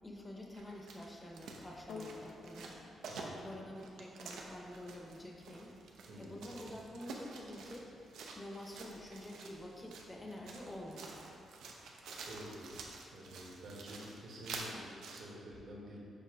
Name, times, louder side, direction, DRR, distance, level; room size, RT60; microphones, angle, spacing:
voice 1, 0.0-5.7 6.2-11.2 12.8-12.9, left 1 dB, 15° left, -1 dB, 0.7 m, -48 dB
sound 1, 0.5-15.2, right 3 dB, 90° right, 0.6 m, -49 dB
sound 2, 1.9-10.4 11.2-11.3, left 4 dB, 75° left, 0.6 m, -56 dB
voice 2, 12.2-12.7 13.1-16.0, equal, 60° right, -3 dB, 1.3 m, -49 dB
6.8 x 2.9 x 5.0 m, 2.5 s
cardioid pair, 145°, 0 cm